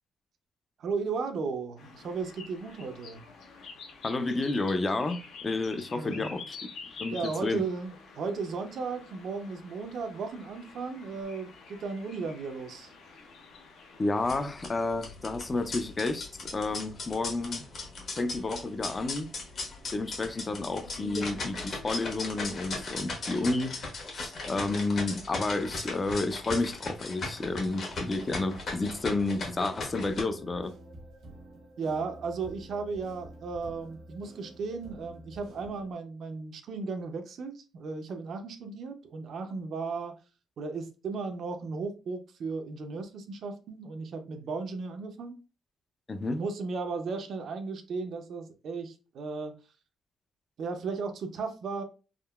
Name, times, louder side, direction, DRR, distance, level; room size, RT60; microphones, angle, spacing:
voice 1, 0.8-3.3 5.9-6.4 7.1-12.9 31.8-40.2 40.6-45.3 46.3-49.5 50.6-51.8, right 4 dB, 65° right, 0.5 m, -35 dB
sound 1, 1.8-14.4, left 4 dB, 75° left, 0.7 m, -48 dB
voice 2, 4.0-5.2 5.4-6.6 6.9-7.6 14.0-17.7 18.2-19.3 19.9-23.8 24.2-30.7 46.1-46.4, left 2 dB, 30° left, 0.4 m, -31 dB
sound 2, 14.2-30.2, left 3 dB, 55° left, 1.1 m, -38 dB
sound 3, 27.4-35.9, right 1 dB, 80° right, 1.0 m, -49 dB
3.6 x 2.1 x 2.2 m
cardioid pair, 90°, 0 cm